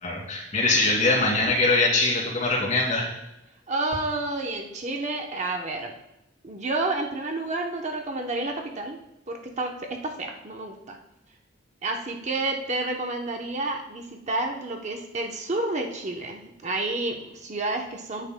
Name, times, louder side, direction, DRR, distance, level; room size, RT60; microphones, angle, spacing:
voice 1, 0.0-3.1, left 2 dB, 40° left, -2 dB, 2.5 m, -22 dB
voice 2, 3.7-5.9 6.4-9.0 9.3-11.0 11.8-18.3, right 2 dB, 40° right, 2 dB, 0.8 m, -30 dB
9.8 x 9.1 x 2.2 m, 0.91 s
head